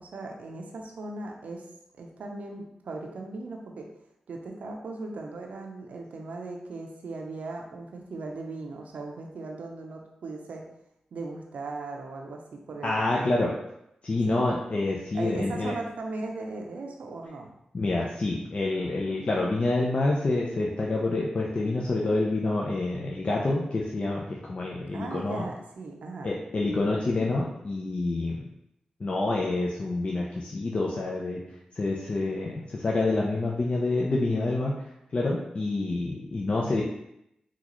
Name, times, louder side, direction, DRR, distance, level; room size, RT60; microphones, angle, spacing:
voice 1, 0.0-1.7 2.0-3.9 4.3-10.7 11.1-13.5 14.2-14.5 15.1-17.5 24.9-26.3, right 3 dB, 80° right, 1 dB, 0.5 m, -38 dB
voice 2, 12.8-13.5 14.0-15.7 17.7-25.5 26.2-28.5 29.0-31.4 31.8-34.7 35.1-36.8, left 2 dB, 50° left, -3 dB, 0.5 m, -27 dB
3.8 x 2.4 x 3.0 m, 0.81 s
cardioid pair, 45°, 2 cm